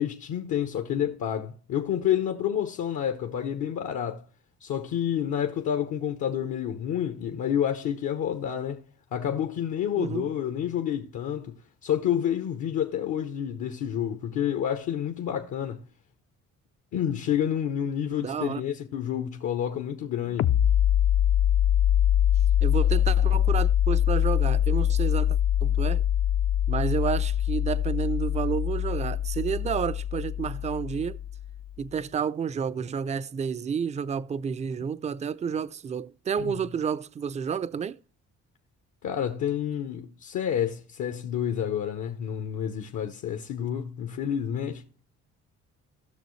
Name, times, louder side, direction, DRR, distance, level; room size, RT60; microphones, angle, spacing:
voice 1, 0.0-4.3 4.6-8.8 9.1-15.9 16.9-20.6 36.4-36.6 39.0-44.9, left 9 dB, 70° left, 0.8 m, -29 dB
voice 2, 10.0-10.3 18.2-18.6 22.6-26.0 26.7-31.2 31.8-38.0, right 7 dB, 25° right, 0.4 m, -30 dB
sound 1, 20.4-31.7, left 10 dB, 50° left, 0.4 m, -24 dB
16.5 x 6.3 x 3.1 m
cardioid pair, 90°, 30 cm